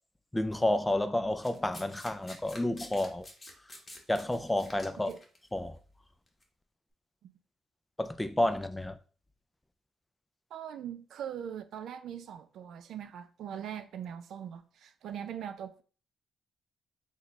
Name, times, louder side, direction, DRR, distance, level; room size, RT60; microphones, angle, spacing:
voice 1, 0.3-3.3 4.1-5.1 5.5-5.8 8.0-9.0, left 1 dB, 10° left, 0.3 m, -30 dB
Domestic sounds home sounds, 1.4-5.4 6.3-6.4, left 1 dB, 30° left, 0.8 m, -48 dB
voice 2, 10.5-15.8, right 9 dB, 70° right, 0.3 m, -41 dB
3.0 x 2.2 x 4.0 m
cardioid pair, 90°, 0 cm